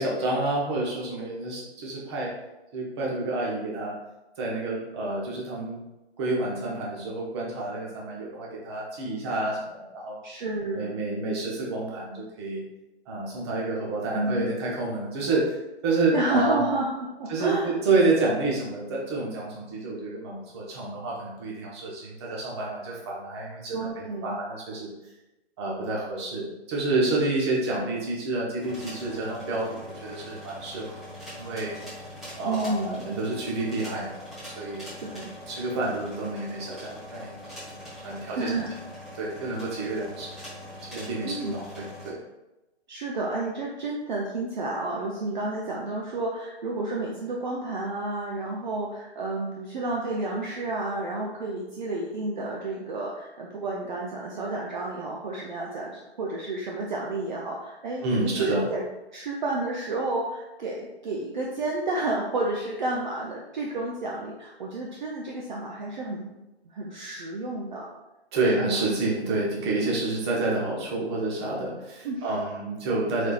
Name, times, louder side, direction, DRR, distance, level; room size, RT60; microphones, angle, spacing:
voice 1, 0.0-2.3 2.7-3.9 4.4-5.8 6.2-10.2 10.7-12.6 13.1-16.6 17.3-24.9 25.6-31.0 31.4-31.7 32.4-34.1 34.4-34.9 35.5-37.3 38.0-38.5 39.1-40.3 40.9-42.2 58.0-58.7 68.3-73.3, right 2 dB, 25° right, -3 dB, 0.9 m, -29 dB
voice 2, 10.2-11.0 14.1-14.5 16.1-17.7 23.7-24.4 32.4-33.2 35.0-35.3 38.4-38.7 41.2-41.5 42.9-58.8 59.1-66.4 66.6-67.9 68.6-68.8 72.0-72.3, right 2 dB, 45° right, -2 dB, 0.6 m, -31 dB
sound 1, 28.6-42.1, left 1 dB, ahead, 0.6 m, -42 dB
4.3 x 4.2 x 2.4 m, 0.98 s
hypercardioid pair, 150°, 33 cm